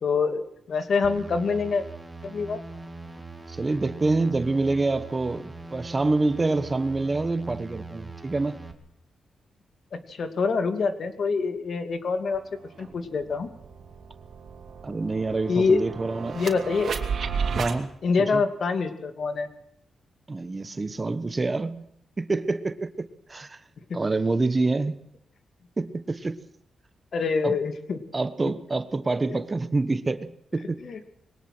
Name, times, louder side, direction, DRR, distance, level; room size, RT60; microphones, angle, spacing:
voice 1, 0.0-1.8 2.2-2.6 9.9-12.4 12.8-13.5 15.5-15.8 16.3-16.9 18.0-19.5 23.9-24.0 27.1-28.0 29.3-29.4 30.8-31.0, left 4 dB, 55° left, 9 dB, 2.6 m, -25 dB
sound 1, 1.0-8.7, right 3 dB, 5° right, 2.8 m, -41 dB
voice 2, 3.5-8.6 14.8-16.4 17.6-17.9 18.2-18.4 20.3-21.8 22.2-23.6 23.9-24.9 25.8-26.4 27.4-27.6 28.1-31.0, right 3 dB, 25° right, 13 dB, 1.2 m, -27 dB
sound 2, 12.3-12.4 12.8-17.8, right 5 dB, 55° right, 3.1 m, -33 dB
22.5 x 18.5 x 6.2 m, 0.74 s
wide cardioid pair, 125°, 0 cm